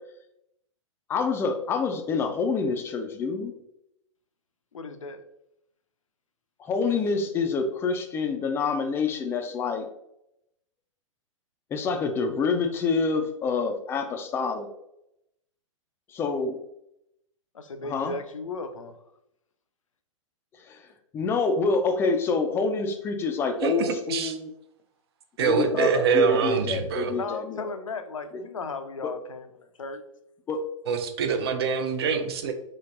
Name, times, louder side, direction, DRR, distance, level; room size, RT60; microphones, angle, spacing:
voice 1, 1.1-3.5 6.6-9.9 11.7-14.7 16.1-16.6 17.8-18.1 20.6-20.9 21.1-24.5 25.4-27.6 30.5-30.7, left 4 dB, 15° left, 6 dB, 0.3 m, -27 dB
voice 2, 4.7-5.2 6.9-7.0 17.5-19.0 27.1-30.0, left 3 dB, 75° left, 8 dB, 0.5 m, -36 dB
voice 3, 23.6-24.3 25.4-27.1 30.9-32.5, right 6 dB, 50° right, 7 dB, 0.5 m, -25 dB
4.2 x 3.1 x 2.4 m, 0.81 s
figure-of-eight pair, 105°, 17 cm